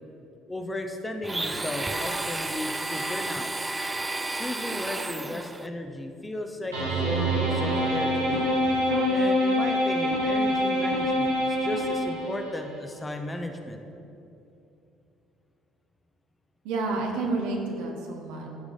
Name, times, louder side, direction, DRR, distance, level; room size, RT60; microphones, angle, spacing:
voice 1, 0.5-3.5 4.3-8.5 9.1-13.8, left 1 dB, 15° left, 5 dB, 0.8 m, -35 dB
Domestic sounds home sounds, 1.2-5.7, right 2 dB, 15° right, 0.4 m, -31 dB
sound 1, 6.7-12.5, equal, 80° right, 1.6 m, -25 dB
voice 2, 16.6-18.5, right 3 dB, 65° right, 1 dB, 1.0 m, -29 dB
13.0 x 4.8 x 3.9 m, 2.7 s
figure-of-eight pair, 55°, 0 cm